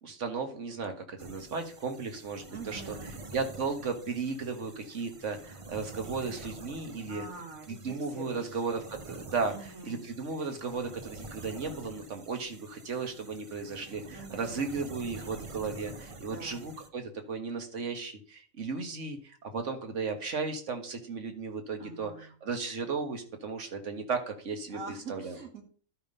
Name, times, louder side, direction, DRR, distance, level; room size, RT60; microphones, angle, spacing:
voice 1, 0.0-3.0 3.3-7.3 7.7-24.8 25.1-25.4, right 4 dB, 65° right, 6 dB, 1.8 m, -35 dB
sound 1, 1.2-16.9, right 2 dB, 30° right, 0.7 m, -47 dB
voice 2, 2.5-3.1 7.1-8.6 9.4-10.1 14.1-14.7 16.3-16.6 21.8-22.3 24.7-25.6, right 4 dB, 90° right, 3 dB, 2.6 m, -45 dB
12.0 x 5.2 x 5.4 m, 0.44 s
omnidirectional pair, 1.4 m